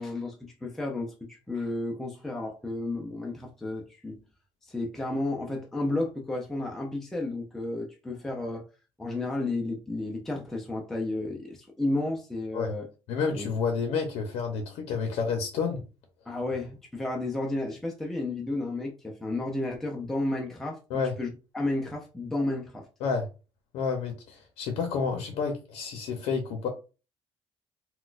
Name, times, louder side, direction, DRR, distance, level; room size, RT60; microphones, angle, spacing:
voice 1, 0.0-4.2 4.6-8.6 9.0-12.9 13.3-13.5 16.3-22.9, left 2 dB, 5° left, 0.4 m, -32 dB
voice 2, 13.1-15.8 20.9-21.1 23.0-23.3 23.7-26.7, left 5 dB, 75° left, 0.6 m, -29 dB
3.9 x 2.2 x 2.4 m
cardioid pair, 175°, 10 cm